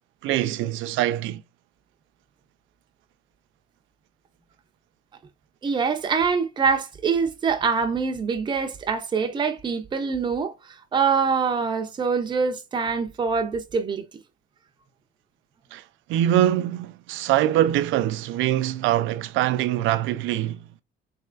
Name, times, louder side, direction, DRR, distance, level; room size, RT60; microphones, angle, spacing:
voice 1, 0.2-1.4 15.7-15.8 16.1-20.6, right 13 dB, 70° right, 0.4 m, -23 dB
voice 2, 5.6-10.5 10.9-14.0, right 5 dB, 20° right, 0.5 m, -24 dB
4.1 x 3.3 x 2.4 m
cardioid pair, 160°, 20 cm